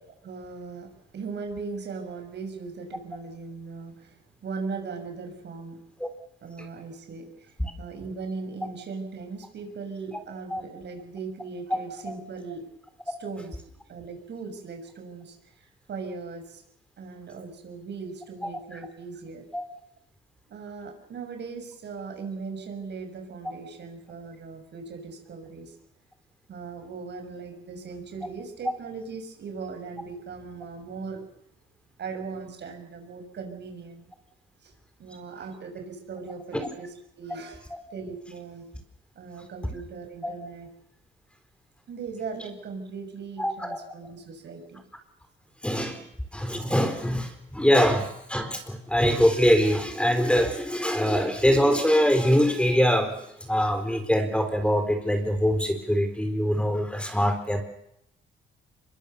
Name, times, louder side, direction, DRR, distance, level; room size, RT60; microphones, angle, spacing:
voice 1, 0.2-5.8 6.4-12.6 13.0-13.5 13.9-16.6 17.0-19.4 20.5-25.8 26.5-31.3 32.0-34.1 34.6-34.7 35.0-37.6 37.9-38.7 39.1-40.7 41.9-44.8, right 4 dB, 60° right, 6 dB, 6.7 m, -39 dB
voice 2, 43.4-43.8 45.6-46.1 46.3-57.6, equal, 5° left, 7 dB, 4.2 m, -23 dB
25.0 x 22.0 x 7.0 m, 0.78 s
cardioid pair, 90°, 20 cm